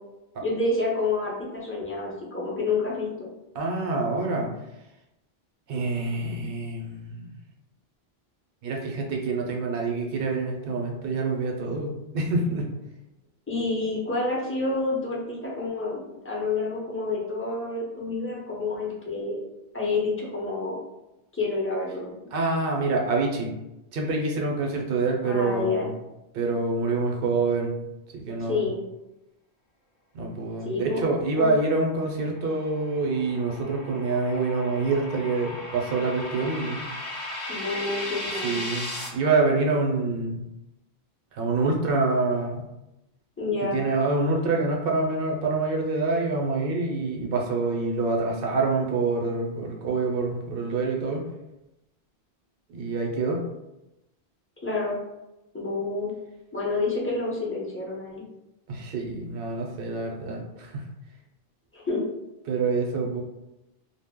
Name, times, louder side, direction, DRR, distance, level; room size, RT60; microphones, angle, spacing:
voice 1, 0.4-3.3 13.5-16.0 16.2-19.5 19.7-20.8 21.3-22.2 25.2-25.9 28.4-28.8 30.6-31.0 31.3-31.5 37.5-38.6 43.4-43.8 54.6-55.0 55.5-56.1 56.5-58.2 61.7-62.0, left 3 dB, 15° left, -5 dB, 0.4 m, -28 dB
voice 2, 3.5-4.5 5.7-7.4 8.6-12.7 22.3-23.5 23.9-25.9 26.3-27.7 28.1-28.7 30.1-36.9 38.4-40.5 41.3-42.7 43.6-51.2 52.7-53.4 58.7-60.9 62.5-63.2, right 3 dB, 65° right, 0 dB, 0.7 m, -26 dB
sound 1, 32.3-39.1, left 1 dB, 45° left, 0.8 m, -36 dB
2.1 x 2.0 x 3.5 m, 0.94 s
omnidirectional pair, 1.1 m